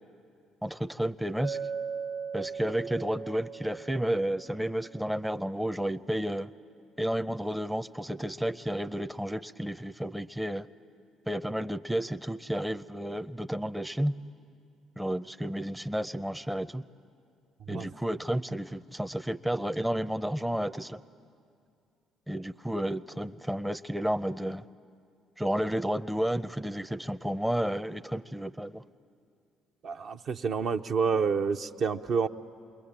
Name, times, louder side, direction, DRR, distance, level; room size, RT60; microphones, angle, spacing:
voice 1, 0.6-1.6 2.3-6.5 7.0-10.7 11.3-14.1 15.0-16.8 17.7-21.0 22.3-24.6 25.4-28.8, equal, 5° right, 10 dB, 0.5 m, -31 dB
Chink clink, 1.4-5.4, right 6 dB, 85° right, 0.9 m, -39 dB
voice 2, 29.8-32.3, right 5 dB, 55° right, 6 dB, 0.7 m, -28 dB
27.5 x 21.5 x 8.8 m, 2.5 s
hypercardioid pair, 60°, 0 cm